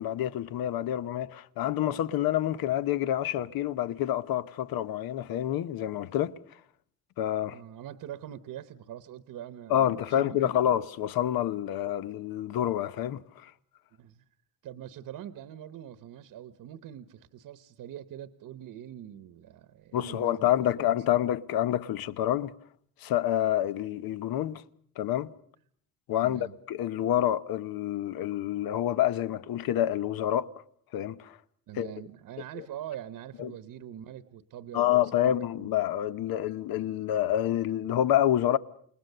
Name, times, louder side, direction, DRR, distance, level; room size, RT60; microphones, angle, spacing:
voice 1, 0.0-6.3 7.2-7.6 9.7-13.5 19.9-22.5 23.0-24.6 25.0-25.3 26.1-30.5 30.9-31.4 31.8-31.9 33.4-33.5 34.7-38.6, left 11 dB, 75° left, 1.0 m, -28 dB
voice 2, 7.4-10.6 13.9-14.2 14.6-20.7 21.1-21.2 26.2-26.5 31.7-35.7, right 11 dB, 65° right, 1.1 m, -44 dB
28.5 x 20.0 x 6.7 m
cardioid pair, 150°, 36 cm